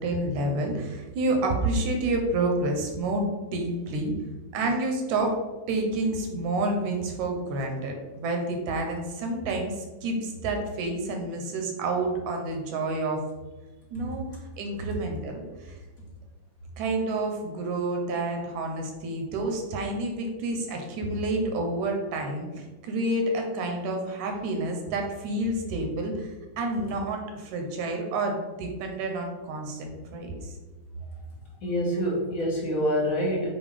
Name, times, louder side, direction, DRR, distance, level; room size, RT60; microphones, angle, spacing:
voice 1, 0.0-4.1 4.5-5.3 5.7-13.2 13.9-14.3 14.6-15.8 16.8-26.3 26.6-30.5, right 2 dB, 75° right, 2 dB, 2.2 m, -29 dB
voice 2, 31.6-33.5, equal, 50° left, -5 dB, 1.0 m, -26 dB
7.2 x 2.9 x 5.0 m, 1.2 s
omnidirectional pair, 3.7 m